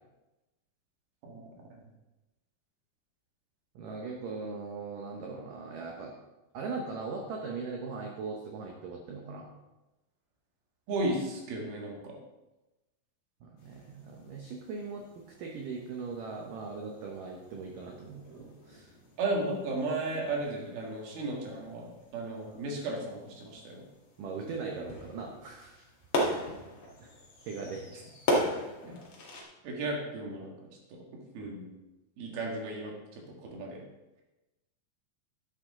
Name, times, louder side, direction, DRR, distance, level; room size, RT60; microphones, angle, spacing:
voice 1, 3.8-6.1 6.5-9.5 13.4-18.9 24.2-25.8 27.0-27.1 27.4-27.9, right 4 dB, 85° right, 0 dB, 1.9 m, -39 dB
voice 2, 10.9-12.2 19.2-23.8 28.8-29.0 29.6-30.5 30.9-31.7 32.2-33.8, right 2 dB, 60° right, -1 dB, 3.4 m, -35 dB
sound 1, 13.6-29.4, left 1 dB, 60° left, 1.3 m, -38 dB
11.5 x 8.2 x 3.7 m, 1.0 s
omnidirectional pair, 5.2 m